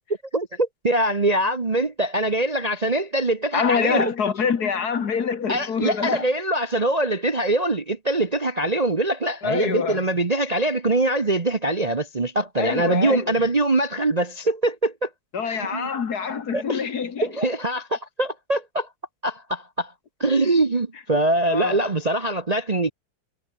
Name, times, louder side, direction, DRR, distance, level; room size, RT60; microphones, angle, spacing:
voice 1, 0.3-4.1 5.5-15.1 15.4-15.9 16.5-16.9 17.2-18.9 19.2-19.9 20.2-22.9, right 2 dB, 25° right, 0.9 m, -23 dB
voice 2, 3.5-6.3 9.4-10.0 12.6-13.4 15.3-17.3 21.5-21.8, left 6 dB, 55° left, 2.0 m, -25 dB
omnidirectional pair, 2.1 m